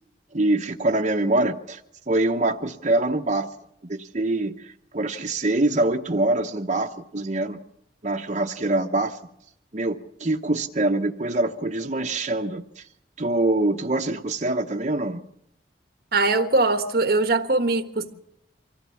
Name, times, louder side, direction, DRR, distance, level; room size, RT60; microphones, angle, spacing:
voice 1, 0.3-1.8 2.1-3.5 3.8-7.6 8.0-9.2 9.7-12.9 13.2-15.2, right 2 dB, 40° right, 0.9 m, -24 dB
voice 2, 16.1-18.1, right 3 dB, 55° right, 1.4 m, -21 dB
24.5 x 15.5 x 7.1 m
head